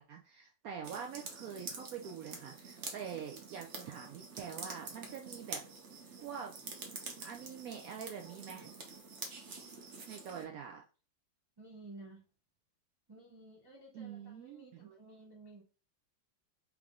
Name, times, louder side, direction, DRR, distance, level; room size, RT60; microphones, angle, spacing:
voice 1, 0.0-5.6 6.2-6.5 7.0-8.7 10.1-10.8 13.9-14.9, right 7 dB, 75° right, 2 dB, 0.8 m, -45 dB
sound 1, 0.8-10.4, right 4 dB, 50° right, 1.0 m, -47 dB
voice 2, 11.6-12.2 13.1-15.6, right 2 dB, 30° right, -2 dB, 0.4 m, -53 dB
3.5 x 3.4 x 3.5 m, 0.35 s
omnidirectional pair, 2.0 m